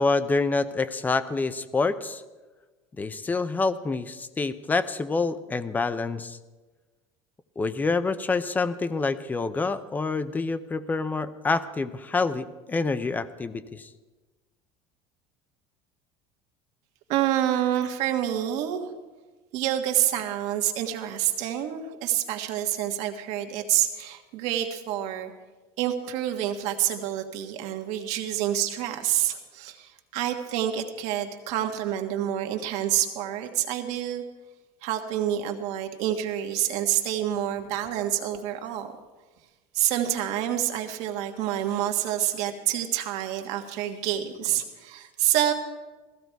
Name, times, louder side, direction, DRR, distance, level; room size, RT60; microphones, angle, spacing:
voice 1, 0.0-2.2 3.0-6.4 7.6-13.9, left 3 dB, 15° left, 13 dB, 0.6 m, -27 dB
voice 2, 17.1-18.8 19.5-25.3 25.8-34.2 34.8-38.9 39.7-45.5, right 11 dB, 65° right, 5 dB, 1.6 m, -27 dB
16.0 x 15.0 x 4.6 m, 1.2 s
cardioid pair, 155°, 13 cm